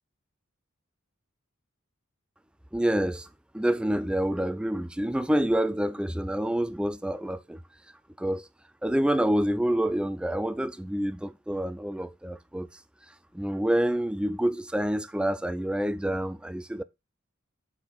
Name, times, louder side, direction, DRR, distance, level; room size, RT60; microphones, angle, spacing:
voice 1, 2.7-3.3 3.5-7.6 8.2-8.5 8.8-12.7 13.3-16.8, right 1 dB, 5° right, 0.3 m, -27 dB
8.2 x 4.4 x 4.0 m
head